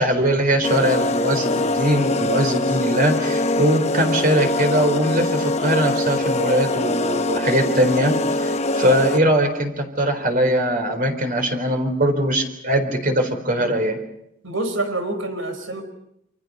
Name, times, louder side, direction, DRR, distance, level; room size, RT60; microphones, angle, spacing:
voice 1, 0.0-14.0, equal, 45° right, 5 dB, 4.2 m, -21 dB
sound 1, 0.6-9.4, left 2 dB, 35° left, 0.9 m, -23 dB
voice 2, 14.4-15.8, right 2 dB, 90° right, 7 dB, 5.0 m, -26 dB
28.5 x 26.0 x 5.5 m, 0.77 s
head